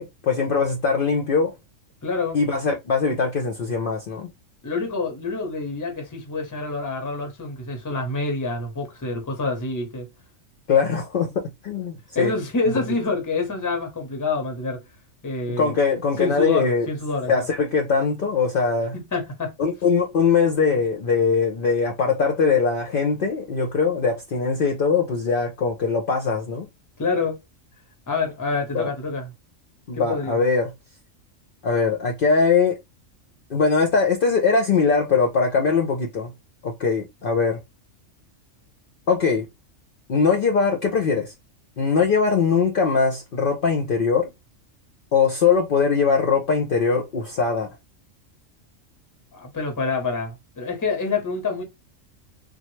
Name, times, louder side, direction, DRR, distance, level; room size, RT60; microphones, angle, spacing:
voice 1, 0.0-1.5 2.3-4.3 10.7-12.3 15.6-16.9 17.3-18.9 19.6-26.7 28.7-28.9 29.9-30.7 31.6-32.8 33.5-36.3 36.6-37.6 39.1-39.5 40.1-41.3 41.8-44.3 45.1-47.7, left 5 dB, 55° left, 0.6 m, -21 dB
voice 2, 2.0-2.4 4.6-10.1 12.1-14.8 15.2-15.7 16.2-17.5 18.9-19.5 27.0-27.4 28.1-29.3 29.9-30.4 49.3-51.6, left 3 dB, 20° left, 0.7 m, -27 dB
3.3 x 2.2 x 3.0 m
omnidirectional pair, 1.3 m